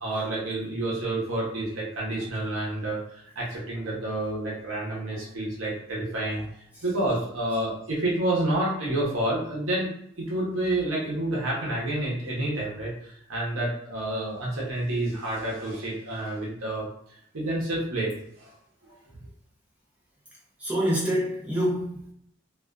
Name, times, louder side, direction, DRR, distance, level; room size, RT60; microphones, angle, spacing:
voice 1, 0.0-6.5 6.8-9.9 10.2-16.9 17.3-18.5 18.9-19.0, right 1 dB, 85° right, 0.8 m, -29 dB
voice 2, 20.6-22.1, equal, 5° right, 0.6 m, -26 dB
2.4 x 2.3 x 2.2 m
head